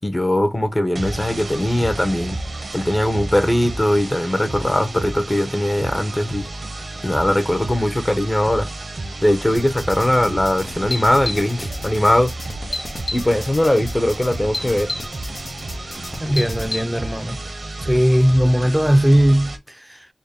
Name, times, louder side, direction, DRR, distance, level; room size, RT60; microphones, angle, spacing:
voice 1, 0.0-2.4 2.7-6.5 7.0-8.7 9.2-12.3 13.1-14.9, left 1 dB, 25° left, 0.9 m, -20 dB
sound 1, 1.0-19.6, right 2 dB, 85° right, 0.8 m, -32 dB
sound 2, 9.5-16.8, left 2 dB, 70° left, 0.9 m, -31 dB
voice 2, 16.2-17.4 17.8-20.1, equal, 10° right, 0.5 m, -18 dB
4.2 x 2.2 x 3.4 m
wide cardioid pair, 75°, 0 cm